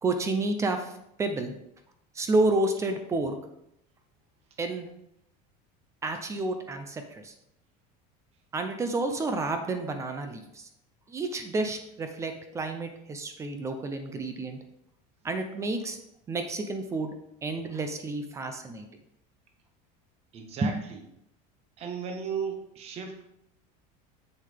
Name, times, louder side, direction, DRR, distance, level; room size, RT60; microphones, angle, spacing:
voice 1, 0.0-1.5 2.1-3.4 4.6-4.9 6.0-7.3 8.5-10.7 11.1-14.6 15.2-16.0 16.3-17.1 17.4-18.8 20.6-20.7, right 2 dB, 15° right, 7 dB, 0.5 m, -30 dB
voice 2, 20.3-21.0 21.8-23.3, right 6 dB, 30° right, 4 dB, 1.1 m, -35 dB
7.6 x 6.7 x 3.4 m, 0.79 s
cardioid pair, 175°, 20 cm